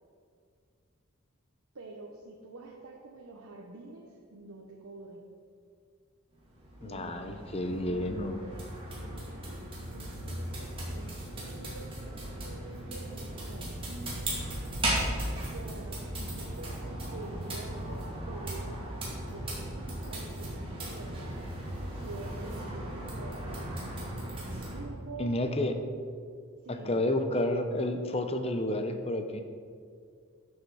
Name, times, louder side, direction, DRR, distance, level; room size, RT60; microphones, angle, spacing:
voice 1, 1.7-5.3 6.8-8.7 8.9-11.1 11.4-14.5 15.3-21.5 21.9-24.2 24.7-25.7 26.6-27.1, right 2 dB, 85° right, -1 dB, 0.9 m, -47 dB
sound 1, 6.3-24.8, right 1 dB, 25° right, 2.4 m, -37 dB
voice 2, 6.8-8.4 25.2-25.7 26.7-29.4, left 1 dB, 25° left, 7 dB, 0.6 m, -30 dB
11.5 x 6.5 x 4.7 m, 2.2 s
head